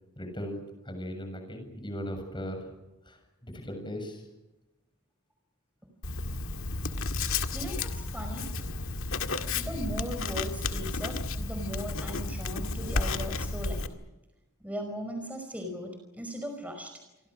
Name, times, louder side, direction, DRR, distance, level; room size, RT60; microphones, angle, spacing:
voice 1, 0.2-2.7 3.1-3.2 3.4-4.2, equal, 20° left, 5 dB, 7.3 m, -38 dB
Writing, 6.0-13.9, left 3 dB, 65° left, 2.0 m, -32 dB
voice 2, 7.5-8.5 9.5-13.8 14.6-16.9, equal, 5° right, 4 dB, 5.0 m, -38 dB
29.5 x 24.0 x 6.4 m, 0.99 s
head